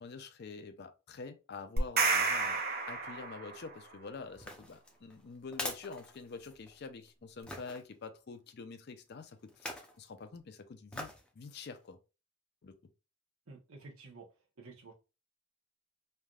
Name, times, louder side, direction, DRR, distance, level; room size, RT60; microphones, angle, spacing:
voice 1, 0.0-2.6 2.9-12.0 12.6-12.7, left 4 dB, 50° left, 0.4 m, -47 dB
sound 1, 1.8-3.7, right 4 dB, 45° right, 0.5 m, -31 dB
sound 2, 4.3-6.8 7.5-7.8 9.5-10.0 10.9-11.3 11.8-11.9, left 1 dB, 5° left, 0.5 m, -43 dB
voice 2, 13.5-14.3 14.6-14.9, right 3 dB, 90° right, 0.9 m, -51 dB
3.2 x 2.6 x 2.3 m
head